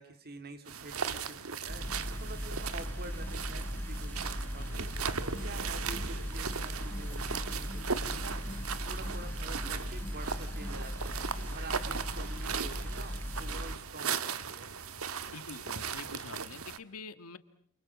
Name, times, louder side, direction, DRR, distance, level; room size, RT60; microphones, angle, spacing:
voice 1, 0.0-8.6 8.9-14.7, right 2 dB, 45° right, 9 dB, 2.9 m, -48 dB
sound 1, 0.7-16.8, right 6 dB, 70° right, 1.5 m, -38 dB
sound 2, 1.7-13.7, equal, 10° left, 1.2 m, -38 dB
voice 2, 4.6-4.9 15.3-17.4, left 4 dB, 75° left, 12 dB, 1.7 m, -46 dB
sound 3, 5.3-11.6, equal, 25° right, 7.6 m, -50 dB
29.0 x 29.0 x 6.0 m, 0.63 s
head